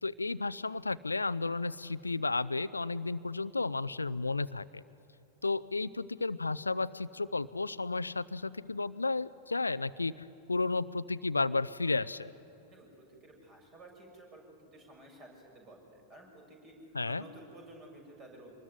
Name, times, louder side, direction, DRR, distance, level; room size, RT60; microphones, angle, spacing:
voice 1, 0.0-4.8 5.4-12.3 16.9-17.2, left 3 dB, 80° left, 16 dB, 0.5 m, -33 dB
voice 2, 12.7-16.8 17.0-18.6, right 1 dB, 30° right, 2 dB, 6.8 m, -53 dB
25.5 x 20.5 x 9.6 m, 2.9 s
figure-of-eight pair, 90°, 0 cm